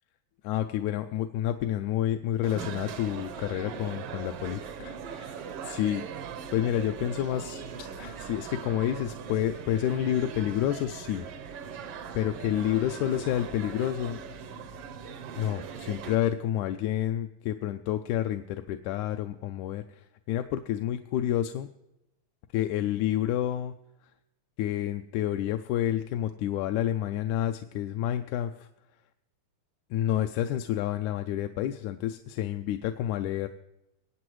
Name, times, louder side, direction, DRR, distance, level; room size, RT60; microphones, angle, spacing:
voice 1, 0.4-6.0 6.5-11.3 11.7-11.8 12.1-14.2 15.3-21.7 22.5-23.7 24.6-28.7 29.9-33.5, left 11 dB, 85° left, 7 dB, 1.9 m, -29 dB
sound 1, 2.4-16.2, right 7 dB, 70° right, 1.5 m, -40 dB
23.0 x 8.5 x 3.1 m, 0.89 s
omnidirectional pair, 3.4 m